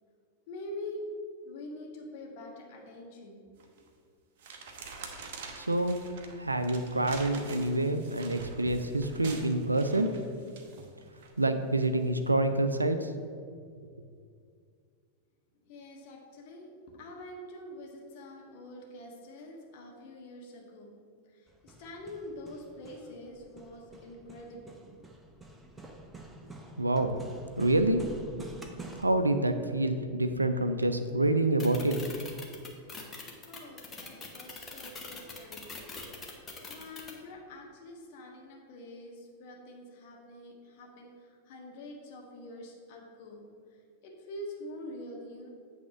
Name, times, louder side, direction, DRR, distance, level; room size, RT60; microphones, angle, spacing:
voice 1, 0.5-1.0 1.4-3.8 15.6-20.9 21.3-25.0 33.5-35.8 36.7-43.4 44.0-45.5, left 1 dB, 50° left, 0 dB, 1.4 m, -45 dB
sound 1, 3.6-3.9 4.4-11.3 11.8-12.1, right 4 dB, 50° right, 0.9 m, -46 dB
voice 2, 5.6-6.1 6.4-10.1 11.4-13.1 13.8-13.9 26.8-27.2 27.6-28.0 29.0-32.0, right 2 dB, 80° right, 9 dB, 0.4 m, -27 dB
Hammer, 21.5-29.0, right 2 dB, 10° right, 0.7 m, -48 dB
sound 2, 31.6-37.1, left 4 dB, 20° left, 1.1 m, -42 dB
8.4 x 3.5 x 5.9 m, 2.2 s
figure-of-eight pair, 90°, 0 cm